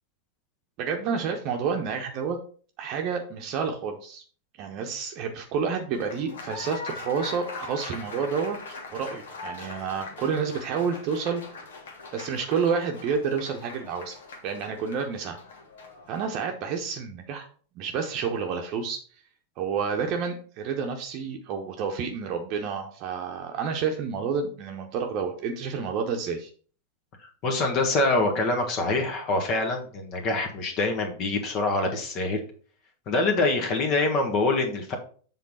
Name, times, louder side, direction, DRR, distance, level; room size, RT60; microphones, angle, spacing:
voice 1, 0.8-2.4 2.8-4.2 4.6-8.6 8.9-11.4 12.1-14.2 14.4-15.4 16.1-17.5 17.8-19.0 19.6-26.5, right 6 dB, 40° right, 3 dB, 1.0 m, -29 dB
Applause, 5.9-16.3, left 3 dB, 60° left, 1.4 m, -41 dB
voice 2, 27.4-32.4 33.1-35.0, left 2 dB, 35° left, 3 dB, 1.5 m, -25 dB
7.4 x 3.8 x 5.5 m, 0.43 s
figure-of-eight pair, 90°, 0 cm